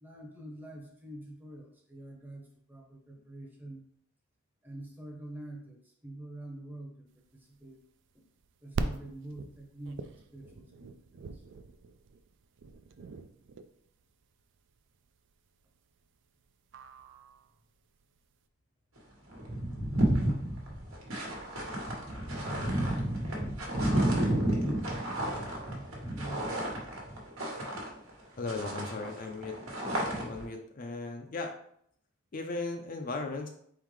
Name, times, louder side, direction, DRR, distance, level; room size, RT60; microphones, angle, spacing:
voice 1, 0.0-3.8 4.6-7.1 7.4-7.8 8.6-10.9 11.3-11.4 26.1-26.4, right 1 dB, 10° right, 0 dB, 0.7 m, -45 dB
sound 1, 7.3-18.3, right 4 dB, 55° right, 0.3 m, -42 dB
sound 2, 19.0-19.1 19.3-28.2 28.5-30.5, right 1 dB, 75° right, 1.3 m, -31 dB
voice 2, 28.4-29.6 30.1-31.5 32.3-33.5, left 3 dB, 40° left, 4 dB, 0.4 m, -37 dB
4.5 x 3.7 x 3.1 m, 0.68 s
head